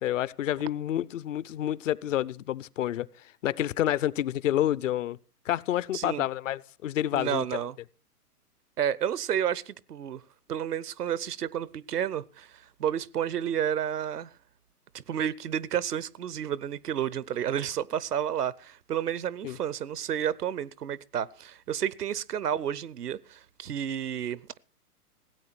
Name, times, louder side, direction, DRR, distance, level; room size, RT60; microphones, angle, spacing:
voice 1, 0.0-3.1 3.4-5.2 5.5-7.4 19.4-19.6, left 12 dB, 55° left, 0.7 m, -28 dB
voice 2, 5.9-6.2 7.1-7.8 8.8-10.2 10.5-14.3 14.9-24.6, right 9 dB, 85° right, 0.8 m, -31 dB
16.5 x 8.7 x 5.9 m
hypercardioid pair, 125°, 46 cm